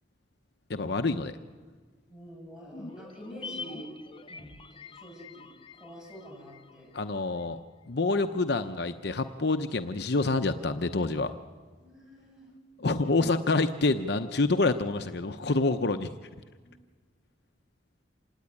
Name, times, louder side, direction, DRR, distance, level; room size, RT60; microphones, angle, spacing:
voice 1, 0.7-1.4 6.9-7.6 7.9-11.3 12.8-16.1, left 3 dB, 65° left, 8 dB, 0.8 m, -27 dB
voice 2, 2.1-3.9 4.2-4.5 4.9-5.5 5.8-6.9 11.8-12.5 16.6-16.8, equal, 5° right, -1 dB, 7.2 m, -47 dB
sound 1, 2.7-7.2 7.4-7.5, left 3 dB, 30° left, 0.8 m, -45 dB
27.0 x 17.5 x 9.7 m, 1.5 s
head